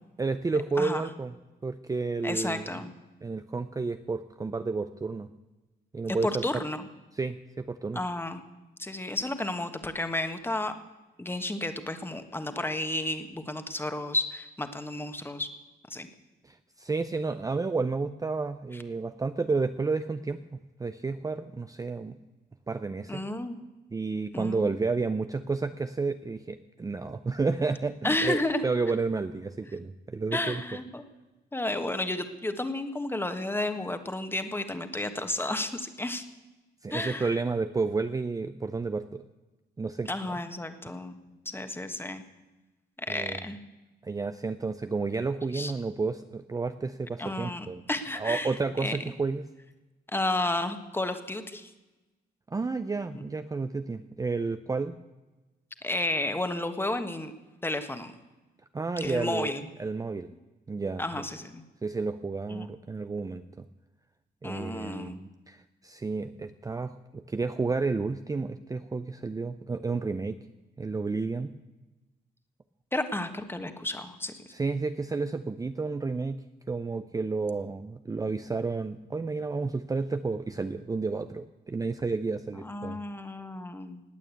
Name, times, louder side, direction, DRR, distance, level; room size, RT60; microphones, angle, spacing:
voice 1, 0.2-1.3 1.6-2.8 3.2-5.3 5.9-6.6 7.2-8.0 16.4-22.2 22.7-23.2 23.9-30.6 36.8-39.2 39.8-40.1 43.1-43.4 44.0-47.8 48.1-49.4 52.5-54.9 58.7-59.5 59.8-60.3 60.7-61.2 61.8-63.7 64.4-70.4 70.8-71.5 74.5-76.4 76.7-83.0, right 4 dB, 20° right, 10 dB, 0.5 m, -31 dB
voice 2, 2.2-2.9 6.1-6.9 7.9-8.4 8.8-10.7 11.2-15.5 15.9-16.1 23.1-23.6 24.3-24.6 28.0-28.6 30.3-31.0 31.5-36.2 36.9-37.3 40.1-42.2 43.0-43.6 45.5-45.7 47.2-48.5 48.8-49.0 50.1-51.7 55.8-57.3 57.6-58.1 59.0-59.6 61.0-61.6 62.5-62.7 64.4-65.2 72.9-74.4 82.6-84.0, left 2 dB, 15° left, 9 dB, 1.4 m, -32 dB
18.0 x 9.0 x 8.4 m, 1.1 s
cardioid pair, 110°, 17 cm